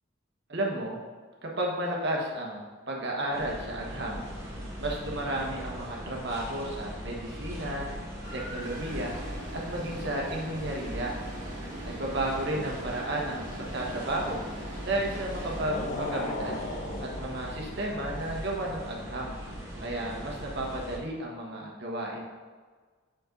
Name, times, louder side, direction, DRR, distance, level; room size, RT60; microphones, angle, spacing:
voice 1, 0.5-1.0 1.4-4.2 4.8-7.9 8.3-9.1 9.5-11.1 11.8-14.4 14.8-16.6 17.0-19.3 19.8-22.2, right 1 dB, 55° right, -1 dB, 1.4 m, -33 dB
sound 1, 3.3-21.0, equal, 15° right, 1.6 m, -40 dB
sound 2, 8.2-15.7, right 1 dB, 40° right, 2.0 m, -42 dB
sound 3, 15.6-18.0, left 2 dB, 35° left, 0.6 m, -36 dB
6.2 x 5.5 x 3.9 m, 1.5 s
head